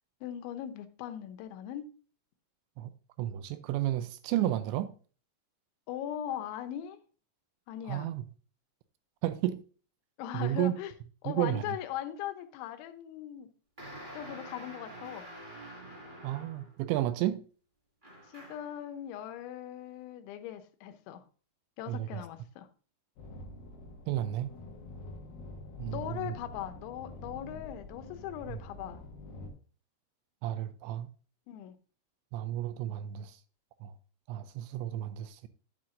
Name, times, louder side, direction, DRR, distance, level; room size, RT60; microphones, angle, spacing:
voice 1, 0.2-1.9 5.9-7.0 7.7-8.1 10.2-10.9 11.2-13.5 14.1-15.3 18.3-21.2 21.8-22.7 25.9-29.0 31.5-31.8, left 11 dB, 85° left, 3.1 m, -39 dB
voice 2, 3.2-4.9 7.9-8.2 9.2-9.6 10.3-10.7 11.3-11.6 16.2-17.4 21.9-22.2 24.1-24.5 25.8-26.3 28.5-28.6 30.4-31.1 32.3-33.3 33.8-33.9 34.3-35.4, right 13 dB, 85° right, 2.8 m, -32 dB
sound 1, 13.8-16.8 18.0-18.8, right 1 dB, 35° right, 0.8 m, -47 dB
sound 2, 23.2-29.5, left 2 dB, 65° left, 2.4 m, -46 dB
9.5 x 7.4 x 2.5 m
omnidirectional pair, 5.3 m